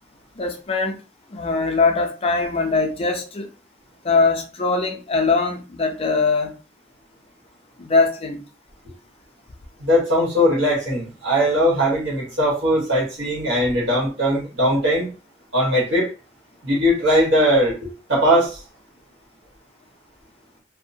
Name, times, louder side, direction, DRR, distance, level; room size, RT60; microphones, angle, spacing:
voice 1, 0.4-1.0 1.3-3.5 4.0-6.6 7.8-8.4, left 4 dB, 30° left, 0.4 m, -21 dB
voice 2, 9.8-15.1 15.5-16.1 16.6-18.6, equal, 90° right, 1.3 m, -20 dB
2.7 x 2.1 x 2.6 m
head